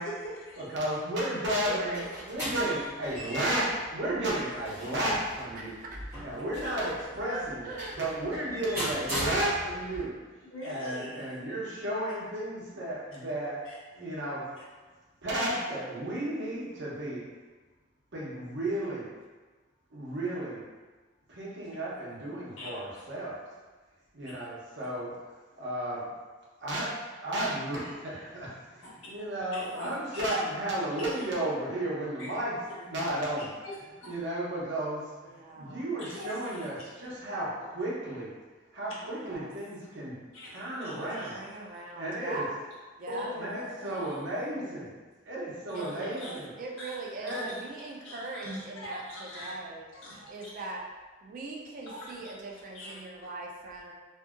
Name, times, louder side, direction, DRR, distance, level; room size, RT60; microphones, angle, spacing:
voice 1, 0.0-0.6 2.4-2.6 6.5-6.9 10.4-11.2 13.6-13.8 21.6-21.8 22.6-22.7 29.5-30.3 31.0-31.1 32.2-32.3 32.7-32.8 33.4-34.1 36.1-36.7 40.3-41.3 43.1-44.7 45.8-46.4 46.8-47.0 47.3-49.5 49.9-50.5 51.9-52.9, left 1 dB, 80° left, -6 dB, 0.9 m, -43 dB
voice 2, 0.7-5.7 6.2-10.1 10.6-13.6 13.9-14.4 15.2-17.2 18.1-19.1 19.9-20.6 21.3-23.4 24.1-25.1 25.6-26.1 26.6-26.9 27.2-33.5 34.0-38.3 38.7-40.1 40.5-41.4 41.9-42.4 43.4-44.9 45.3-46.5 47.2-47.5, right 1 dB, 60° right, -6 dB, 0.8 m, -33 dB
sound 1, 1.6-10.0, equal, 15° right, 1.3 m, -39 dB
voice 3, 1.7-2.1 5.5-5.9 7.3-8.0 35.2-35.9 39.2-39.5 41.2-42.6 43.0-43.3 45.7-49.9 50.3-50.8 51.2-53.9, right 2 dB, 45° right, -1 dB, 0.4 m, -40 dB
2.7 x 2.6 x 2.4 m, 1.3 s
head